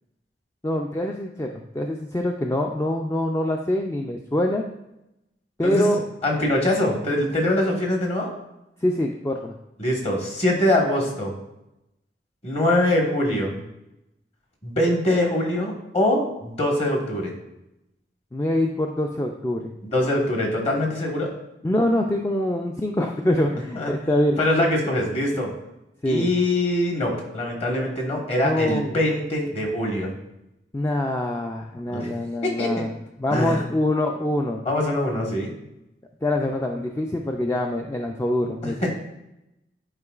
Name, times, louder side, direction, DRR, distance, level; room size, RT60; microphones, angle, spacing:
voice 1, 0.6-4.7 5.6-6.0 8.8-9.5 18.3-19.7 21.6-24.4 26.0-26.3 28.4-28.9 30.7-32.9 33.2-34.6 36.2-38.8, left 1 dB, 15° left, 2 dB, 0.4 m, -24 dB
voice 2, 5.6-8.3 9.8-11.3 12.4-13.6 14.6-17.3 19.8-21.3 23.7-23.9 24.4-25.5 26.0-30.1 31.9-32.1 32.4-32.7 33.3-33.6 34.6-35.5 38.6-38.9, left 1 dB, 35° left, 0 dB, 1.3 m, -23 dB
9.7 x 4.5 x 2.4 m, 0.89 s
head